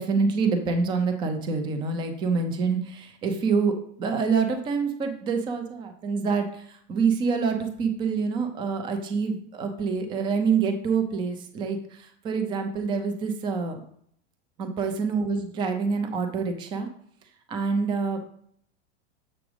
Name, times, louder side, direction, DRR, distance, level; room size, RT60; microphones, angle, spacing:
voice 1, 0.0-13.8 14.6-16.9 17.5-18.2, right 5 dB, 15° right, 6 dB, 0.4 m, -26 dB
7.1 x 3.3 x 6.0 m, 0.65 s
supercardioid pair, 160°, 33 cm